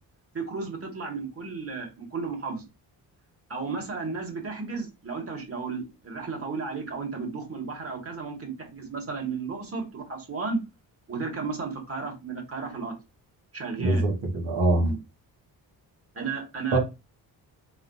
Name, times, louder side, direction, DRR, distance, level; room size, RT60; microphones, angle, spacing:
voice 1, 0.3-2.6 3.5-10.6 11.1-12.9 13.5-14.0 14.8-15.0 16.2-16.8, right 4 dB, 30° right, 2.0 m, -33 dB
voice 2, 13.8-14.9 16.7-16.8, right 2 dB, 80° right, 1.9 m, -23 dB
4.2 x 3.7 x 2.8 m
supercardioid pair, 55°, 45 cm